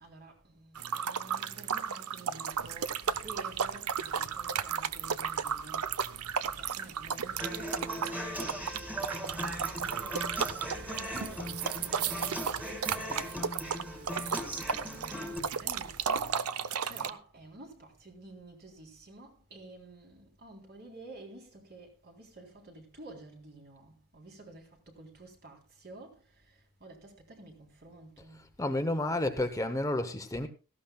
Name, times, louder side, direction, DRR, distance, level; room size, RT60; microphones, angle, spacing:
voice 1, 0.0-28.5, right 2 dB, 50° right, 3.6 m, -51 dB
sound 1, 0.7-17.1, right 7 dB, 80° right, 0.7 m, -34 dB
sound 2, 2.5-16.3, equal, 25° right, 3.7 m, -54 dB
Human voice / Acoustic guitar, 7.4-15.4, equal, 5° right, 2.2 m, -39 dB
voice 2, 28.6-30.5, left 1 dB, 15° left, 0.8 m, -30 dB
17.5 x 14.5 x 2.3 m
head